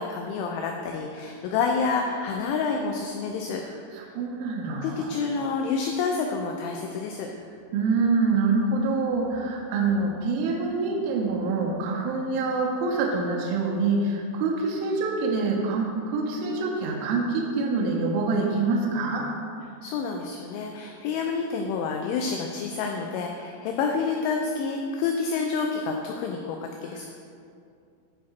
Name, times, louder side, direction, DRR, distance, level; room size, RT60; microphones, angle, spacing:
voice 1, 0.0-3.6 4.8-7.3 19.8-27.1, left 5 dB, 85° left, 2 dB, 2.6 m, -28 dB
voice 2, 3.9-5.1 7.7-19.3, right 3 dB, 80° right, -1 dB, 3.1 m, -26 dB
11.5 x 4.8 x 4.2 m, 2.4 s
omnidirectional pair, 6.0 m